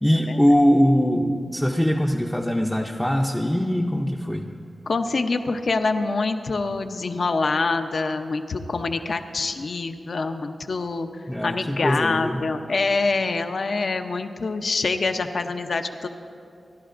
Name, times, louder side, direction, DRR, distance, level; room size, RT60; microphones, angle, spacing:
voice 1, 0.0-4.5 11.3-12.4, equal, 5° left, 0 dB, 0.5 m, -21 dB
voice 2, 4.9-16.1, left 3 dB, 55° left, 8 dB, 0.6 m, -25 dB
29.0 x 12.0 x 2.5 m, 2.4 s
wide cardioid pair, 150°, 0 cm